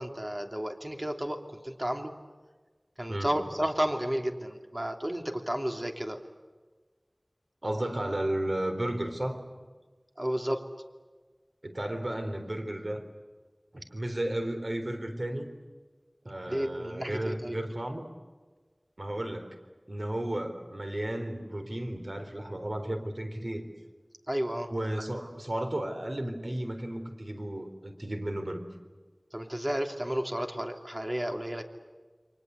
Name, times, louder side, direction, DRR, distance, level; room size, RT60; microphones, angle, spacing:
voice 1, 0.0-2.1 3.0-6.2 10.2-10.6 16.5-17.6 24.3-24.7 29.3-31.6, equal, 30° right, 5 dB, 2.9 m, -32 dB
voice 2, 7.6-9.4 11.6-13.0 13.7-15.5 16.2-18.1 19.0-19.6 19.9-23.7 24.7-28.6, right 1 dB, 60° right, 6 dB, 3.8 m, -33 dB
29.5 x 24.0 x 8.2 m, 1.3 s
wide cardioid pair, 40°, 0 cm